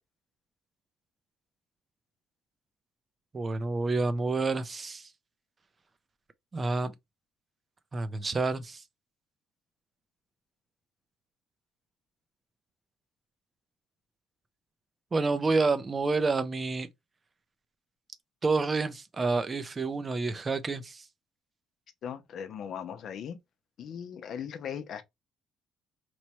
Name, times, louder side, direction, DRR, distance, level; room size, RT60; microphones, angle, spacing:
voice 1, 3.3-5.1 6.5-6.9 7.9-8.8 15.1-16.9 18.4-21.0, right 3 dB, 25° right, 0.5 m, -28 dB
voice 2, 22.0-23.4 23.8-25.0, left 8 dB, 55° left, 0.6 m, -38 dB
3.1 x 2.1 x 4.2 m
cardioid pair, 120°, 0 cm